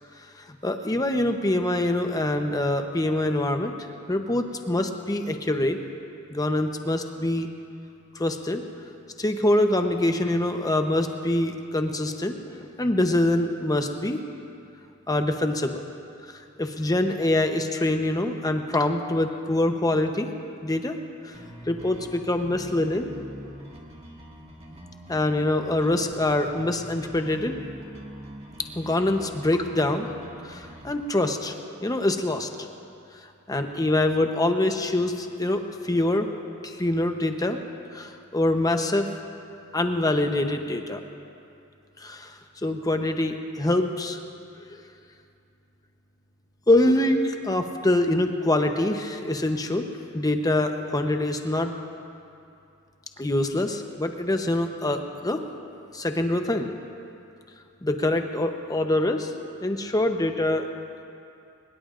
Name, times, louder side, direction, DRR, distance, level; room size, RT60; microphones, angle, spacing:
voice 1, 0.5-3.7 4.1-5.8 6.3-7.5 8.2-8.6 9.2-14.2 15.1-15.8 16.6-20.3 20.6-21.0 21.2-21.3 21.7-23.1 25.1-27.6 28.7-30.1 30.4-31.5 31.8-32.5 33.5-36.3 36.6-37.6 37.9-39.1 39.7-41.0 42.0-42.3 42.6-44.2 46.7-49.9 50.1-51.7 53.2-55.4 55.9-56.7 57.8-59.3 59.6-60.7, left 1 dB, 15° left, 5 dB, 0.9 m, -24 dB
sound 1, 21.3-30.9, equal, 30° right, 1.9 m, -44 dB
22.5 x 20.5 x 2.5 m, 2.6 s
head